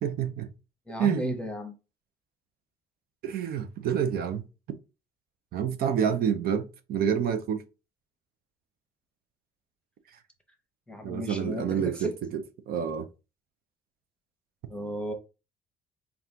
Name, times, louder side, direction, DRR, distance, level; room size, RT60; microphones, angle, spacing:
voice 1, 0.0-0.5 1.0-1.3 3.2-4.4 5.5-7.6 11.0-12.1 12.7-13.1, right 8 dB, 65° right, 0.6 m, -28 dB
voice 2, 0.9-1.7 10.9-12.1 14.7-15.1, equal, 5° left, 0.9 m, -34 dB
4.1 x 2.4 x 3.6 m
cardioid pair, 110°, 17 cm